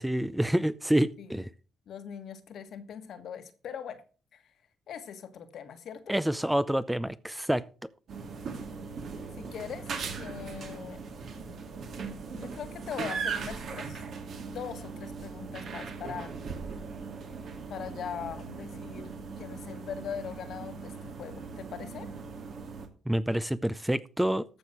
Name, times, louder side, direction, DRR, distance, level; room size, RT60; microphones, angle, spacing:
voice 1, 0.0-1.5 6.1-7.6 23.1-24.4, right 1 dB, 5° right, 0.5 m, -27 dB
voice 2, 1.9-4.0 4.3-4.4 4.9-6.2 9.4-9.9 10.2-11.0 12.3-14.0 14.5-16.3 17.7-22.1, left 8 dB, 65° left, 1.5 m, -41 dB
sound 1, 8.1-22.9, right 5 dB, 60° right, 2.3 m, -39 dB
14.0 x 5.2 x 6.0 m
cardioid pair, 90°, 0 cm